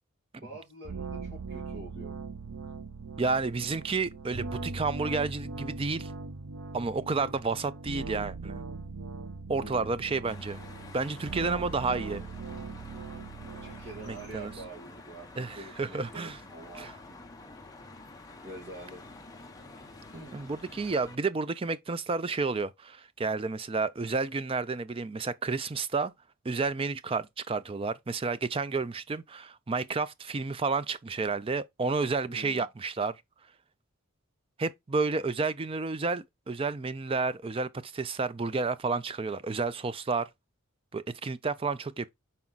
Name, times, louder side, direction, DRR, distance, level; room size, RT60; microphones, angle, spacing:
voice 1, 0.4-2.1 9.6-9.9 13.6-15.3 15.5-17.2 18.4-19.0 20.1-20.5 32.2-32.7, right 2 dB, 50° right, 2.3 m, -46 dB
sound 1, 0.8-14.7, right 4 dB, 70° right, 0.6 m, -40 dB
voice 2, 3.2-6.1 6.7-8.6 9.5-10.6 10.9-12.2 14.1-14.5 15.4-16.4 16.8-16.9 20.3-26.1 26.4-33.1 34.6-40.3 40.9-42.1, right 4 dB, 25° right, 0.4 m, -31 dB
sound 2, 10.3-21.2, left 2 dB, 15° left, 1.0 m, -49 dB
5.9 x 4.2 x 3.9 m
head